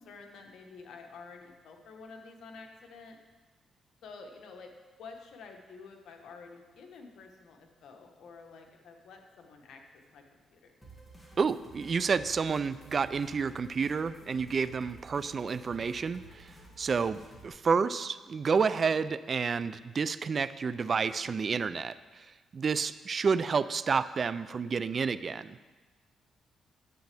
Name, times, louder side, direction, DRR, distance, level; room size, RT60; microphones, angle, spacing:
voice 1, 0.0-3.2 4.0-4.7 5.0-10.7, left 4 dB, 75° left, 3 dB, 1.2 m, -50 dB
sound 1, 10.8-17.5, right 2 dB, 5° left, 2.1 m, -53 dB
voice 2, 11.4-16.5 16.8-22.3 22.5-25.6, right 5 dB, 45° right, 15 dB, 0.3 m, -30 dB
10.5 x 7.6 x 3.4 m, 1.3 s
cardioid pair, 85°, 0 cm